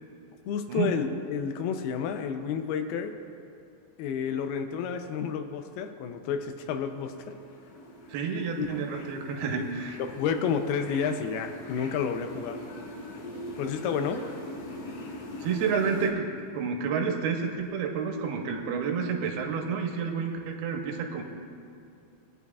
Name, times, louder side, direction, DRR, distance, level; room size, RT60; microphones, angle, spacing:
voice 1, 0.5-3.2 4.0-7.4 8.6-8.7 9.5-9.6 10.0-12.6 13.6-14.3, left 7 dB, 85° left, 7 dB, 2.6 m, -30 dB
sound 1, 6.8-16.1, left 1 dB, 65° left, 2.3 m, -42 dB
voice 2, 8.1-10.0 15.4-21.2, right 6 dB, 85° right, 3 dB, 2.8 m, -30 dB
19.5 x 9.5 x 2.4 m, 2.5 s
omnidirectional pair, 4.4 m